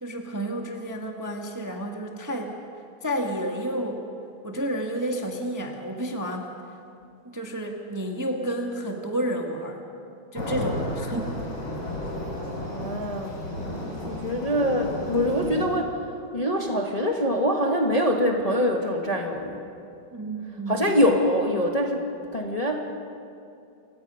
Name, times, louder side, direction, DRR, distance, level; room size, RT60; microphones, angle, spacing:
voice 1, 0.0-2.6 3.0-4.1 4.4-6.6 7.2-9.8 10.3-11.4 20.1-20.9, right 1 dB, 10° right, 2 dB, 1.2 m, -30 dB
sound 1, 10.3-15.7, left 1 dB, 65° left, 4.3 m, -32 dB
voice 2, 12.7-13.4 14.0-19.6 20.7-22.8, equal, 20° left, 1 dB, 1.3 m, -24 dB
29.0 x 16.5 x 5.6 m, 2.6 s
omnidirectional pair, 2.3 m